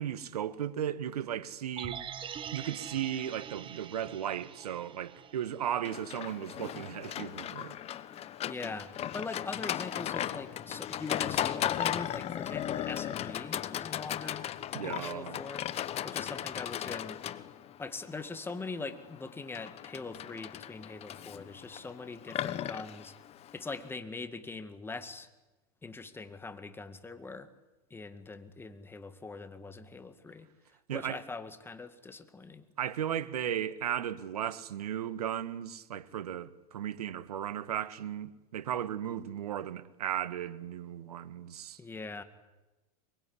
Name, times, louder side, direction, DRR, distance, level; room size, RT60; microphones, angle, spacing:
voice 1, 0.0-2.0 2.5-7.8 14.7-15.4 30.9-31.2 32.8-41.8, right 10 dB, 80° right, 1.5 m, -36 dB
sound 1, 1.8-6.0 6.3-6.4, right 8 dB, 25° right, 1.4 m, -44 dB
Livestock farm animals working animals, 5.8-23.9, left 11 dB, 30° left, 1.3 m, -37 dB
voice 2, 8.4-14.5 14.8-15.6 16.0-17.2 17.8-23.1 23.5-25.3 25.8-27.5 27.9-30.5 30.9-32.6 41.8-42.2, left 3 dB, 10° left, 2.0 m, -42 dB
23.5 x 22.0 x 9.9 m
hypercardioid pair, 110°, 20 cm